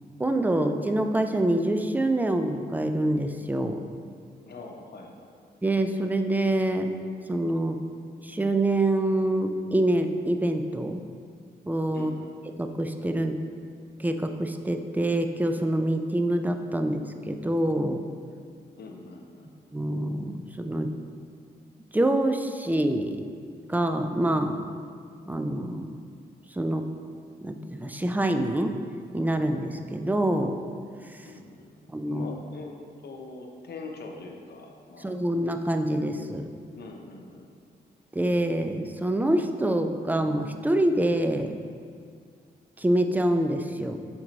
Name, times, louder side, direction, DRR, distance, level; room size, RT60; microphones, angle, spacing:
voice 1, 0.2-3.8 5.6-6.9 7.3-7.8 8.2-11.0 11.7-12.1 12.6-13.4 14.0-18.0 19.7-20.9 21.9-23.2 23.7-24.6 25.3-26.0 26.5-26.8 27.4-28.7 29.1-30.6 31.0-31.3 31.9-32.3 35.0-36.5 38.1-41.6 42.8-44.0, right 1 dB, 10° right, 6 dB, 0.5 m, -26 dB
voice 2, 4.5-5.4 11.9-12.4 18.8-19.6 31.2-35.2 36.7-37.5, left 3 dB, 65° left, 2 dB, 0.8 m, -43 dB
6.1 x 4.3 x 4.0 m, 2.1 s
cardioid pair, 55°, 18 cm